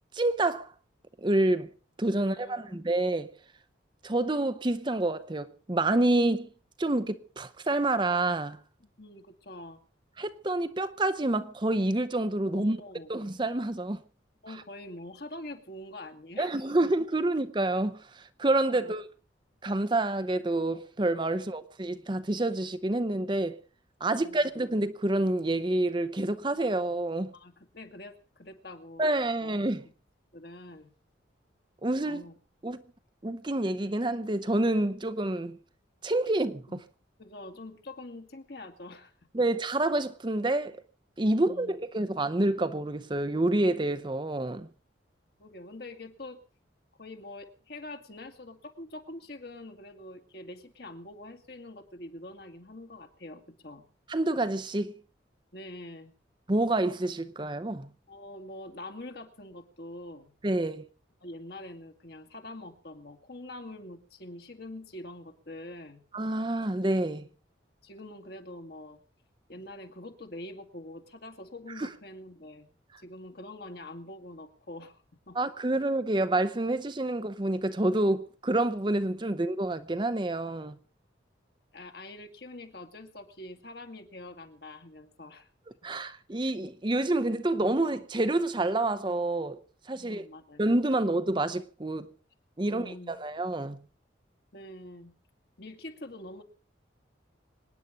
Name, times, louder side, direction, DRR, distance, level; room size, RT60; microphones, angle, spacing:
voice 1, 0.1-0.7 1.2-1.7 2.0-3.3 4.0-6.5 6.8-8.6 10.2-12.8 13.1-14.0 16.4-19.1 19.6-23.6 24.0-27.3 29.0-29.9 31.8-32.2 32.6-32.8 33.2-35.6 36.0-36.8 39.3-40.8 41.2-44.7 54.1-55.0 56.5-57.9 60.4-60.9 66.1-67.3 71.8-71.9 75.3-80.8 85.8-89.6 89.9-90.3 90.6-92.1 92.6-93.8, right 2 dB, 25° right, 0.7 m, -28 dB
voice 2, 2.2-2.8 8.8-9.8 12.5-13.1 14.4-16.9 18.7-18.9 21.3-21.5 24.0-24.5 27.3-29.1 29.4-29.5 30.3-30.9 32.0-32.3 36.7-36.8 37.2-39.5 41.3-41.8 45.4-46.4 47.0-53.9 55.5-56.1 58.1-60.3 61.2-66.0 67.8-69.0 69.5-72.7 73.0-75.4 81.7-85.5 89.9-91.0 92.6-93.1 94.5-95.1 95.6-96.4, left 1 dB, 55° left, 2.0 m, -45 dB
25.5 x 9.7 x 5.0 m
head